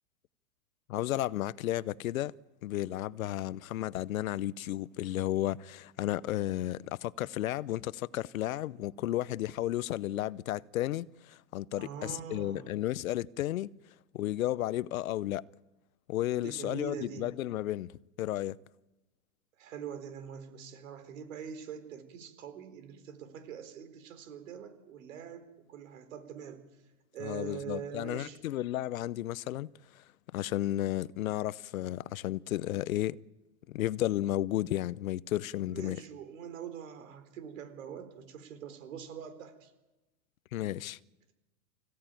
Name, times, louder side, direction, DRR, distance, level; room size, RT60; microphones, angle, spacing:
voice 1, 0.9-2.3 2.6-13.7 14.1-15.4 16.1-17.9 18.2-18.6 27.2-29.7 30.3-33.2 33.7-36.0 40.5-41.0, left 14 dB, 85° left, 0.8 m, -33 dB
voice 2, 11.8-12.8 16.4-17.3 19.6-26.6 27.1-28.4 35.7-39.7, right 8 dB, 70° right, 4.1 m, -44 dB
25.5 x 16.5 x 9.1 m
supercardioid pair, 165°, 41 cm